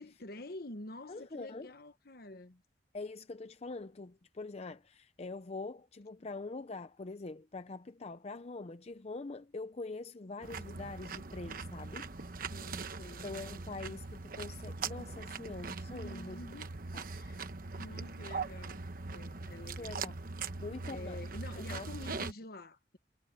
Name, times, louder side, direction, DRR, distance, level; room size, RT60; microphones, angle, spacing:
voice 1, 0.0-2.6 12.5-13.3 15.9-16.7 17.1-17.4 17.8-20.1 20.9-23.0, left 2 dB, 60° left, 1.2 m, -48 dB
voice 2, 1.1-1.7 2.9-12.1 13.2-16.4 16.9-17.0 19.4-20.2 20.5-21.2 21.7-21.9, left 3 dB, 40° left, 0.6 m, -44 dB
sound 1, 10.4-22.3, right 4 dB, 55° right, 1.0 m, -41 dB
head